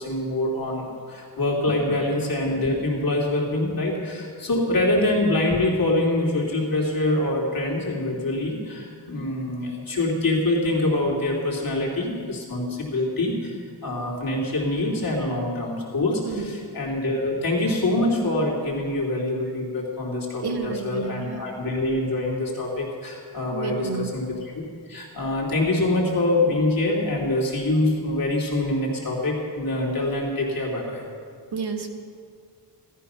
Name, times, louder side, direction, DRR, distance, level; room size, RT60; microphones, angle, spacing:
voice 1, 0.0-13.6 13.8-31.0, left 2 dB, 55° left, -2 dB, 3.1 m, -25 dB
voice 2, 16.2-16.5 20.4-21.5 23.5-24.1 31.5-32.0, right 5 dB, 70° right, 2 dB, 1.8 m, -31 dB
17.0 x 13.0 x 5.7 m, 2.1 s
wide cardioid pair, 115°, 40 cm